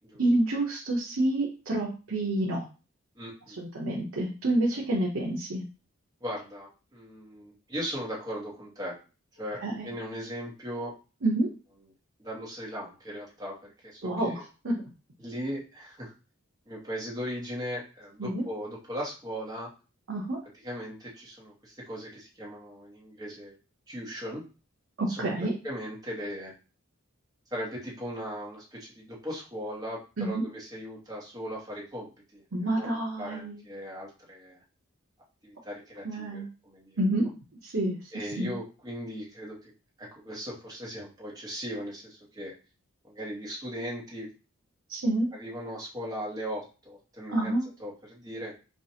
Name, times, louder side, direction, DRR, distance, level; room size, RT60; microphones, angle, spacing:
voice 1, 0.2-2.7 3.6-5.6 9.6-9.9 11.2-11.5 14.0-14.7 18.2-18.4 20.1-20.4 25.0-25.5 30.2-30.5 32.5-33.6 36.0-36.5 37.0-37.3 37.6-38.0 38.4-38.5 44.9-45.3 47.3-47.6, right 1 dB, 70° right, -3 dB, 0.8 m, -28 dB
voice 2, 3.1-3.6 6.2-9.0 9.4-10.9 12.2-14.4 15.2-16.1 16.7-19.7 20.6-23.6 23.9-24.4 25.1-25.3 25.6-26.5 27.5-32.4 32.7-34.6 35.4-37.0 38.1-39.7 40.0-42.5 43.0-44.3 45.3-48.5, equal, 20° right, -4 dB, 1.1 m, -38 dB
4.5 x 2.4 x 2.8 m, 0.33 s
head